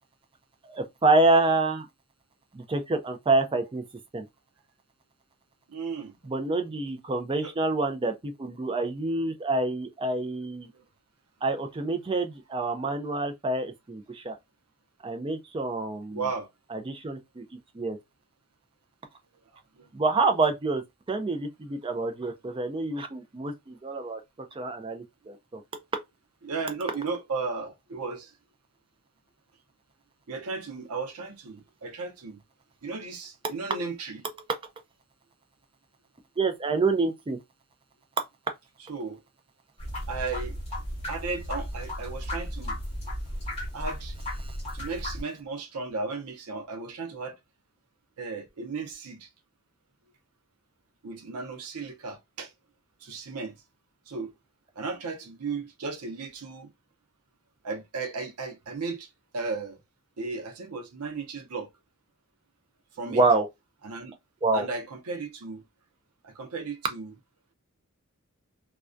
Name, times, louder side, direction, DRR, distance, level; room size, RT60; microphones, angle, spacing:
voice 1, 0.7-1.9 2.5-3.8 4.1-4.2 6.3-10.7 11.4-14.3 15.0-16.2 16.7-17.5 17.7-18.0 19.9-20.8 21.1-24.2 24.6-25.8 33.4-33.8 36.4-37.4 44.4-44.6 63.0-63.5 64.4-64.7, right 3 dB, 25° right, 0.4 m, -27 dB
voice 2, 5.7-6.1 7.4-7.5 10.7-10.8 16.1-16.5 19.8-19.9 26.4-28.3 30.3-32.4 32.8-34.2 38.9-39.2 40.1-40.6 41.1-42.8 43.7-44.2 44.7-47.4 48.2-49.3 51.0-52.5 53.0-53.5 54.1-54.3 54.8-56.7 57.6-59.8 60.2-61.7 62.9-63.2 63.8-64.1 64.5-65.6 66.2-67.1, right 4 dB, 85° right, 0.6 m, -35 dB
sound 1, 39.8-45.2, left 1 dB, 30° left, 1.0 m, -35 dB
2.2 x 2.2 x 2.5 m
head